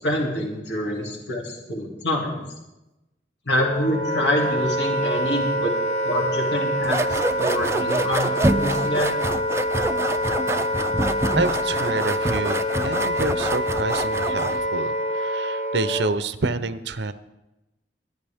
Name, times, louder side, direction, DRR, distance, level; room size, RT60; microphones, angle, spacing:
voice 1, 0.0-2.4 3.5-5.7 6.0-7.0 7.4-9.1, left 1 dB, 85° left, -1 dB, 2.6 m, -26 dB
Wind instrument woodwind instrument, 3.5-16.2, equal, 40° left, 0.8 m, -26 dB
sound 1, 6.8-14.7, right 2 dB, 15° right, 0.4 m, -27 dB
voice 2, 11.4-17.1, right 3 dB, 85° right, 13 dB, 0.7 m, -28 dB
23.5 x 9.4 x 3.5 m, 0.99 s
head